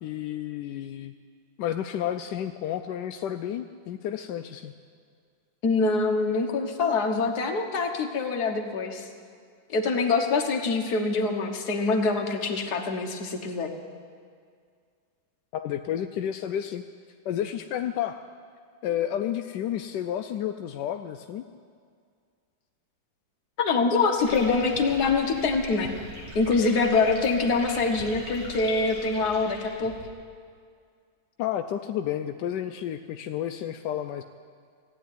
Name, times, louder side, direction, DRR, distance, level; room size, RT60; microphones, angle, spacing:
voice 1, 0.0-1.1 1.6-4.7 15.5-16.8 17.2-18.2 18.8-21.4 31.4-34.2, left 10 dB, 75° left, 7 dB, 1.0 m, -31 dB
voice 2, 5.6-9.1 9.7-13.7 23.6-25.9 26.3-29.9, left 4 dB, 55° left, 3 dB, 1.7 m, -25 dB
sound 1, 24.2-30.1, equal, 55° right, 3.7 m, -41 dB
15.0 x 9.2 x 9.4 m, 2.1 s
omnidirectional pair, 2.2 m